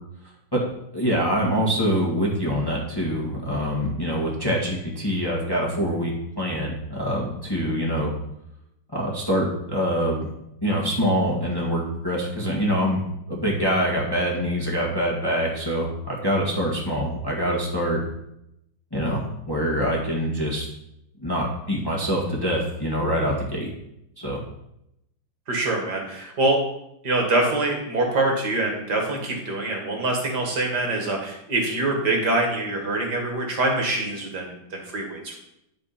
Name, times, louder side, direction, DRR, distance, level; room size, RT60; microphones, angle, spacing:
voice 1, 0.9-8.1 8.9-10.3 10.6-13.0 13.3-18.0 18.9-20.7 21.2-23.7 24.2-24.4, equal, 10° left, -3 dB, 1.7 m, -25 dB
voice 2, 25.5-26.6 27.0-35.4, right 2 dB, 60° right, 1 dB, 2.2 m, -24 dB
11.5 x 4.3 x 5.8 m, 0.81 s
omnidirectional pair, 2.1 m